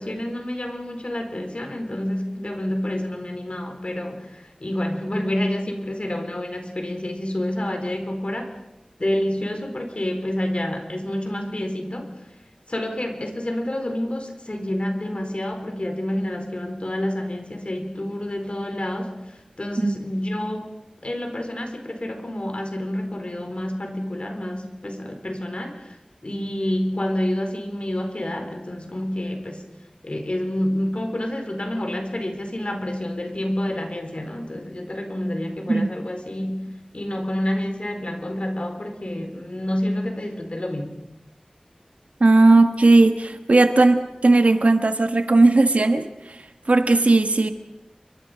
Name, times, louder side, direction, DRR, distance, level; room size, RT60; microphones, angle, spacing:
voice 1, 0.0-8.5 9.0-12.1 12.7-26.0 26.2-29.6 30.0-36.7 36.9-41.0, left 1 dB, 55° left, 5 dB, 4.4 m, -28 dB
voice 2, 42.2-46.4 46.7-47.5, right 2 dB, 80° right, 7 dB, 1.5 m, -17 dB
30.0 x 23.0 x 5.2 m, 0.90 s
wide cardioid pair, 40°, 2 cm